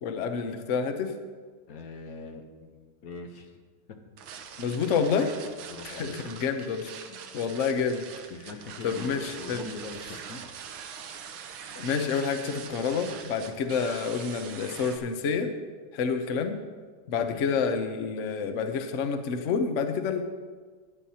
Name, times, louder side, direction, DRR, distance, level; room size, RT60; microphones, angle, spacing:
voice 1, 0.0-1.1 4.6-5.3 5.8-6.9 7.3-8.1 8.8-9.6 11.8-15.5 15.9-16.6 17.1-20.2, left 6 dB, 80° left, 7 dB, 0.6 m, -28 dB
voice 2, 1.7-3.6 3.9-4.0 5.7-6.2 7.1-7.2 8.3-10.4 17.0-17.5, left 4 dB, 60° left, 4 dB, 1.0 m, -42 dB
sound 1, 4.2-15.0, right 7 dB, 70° right, 1.5 m, -43 dB
16.5 x 10.0 x 2.8 m, 1.5 s
omnidirectional pair, 2.4 m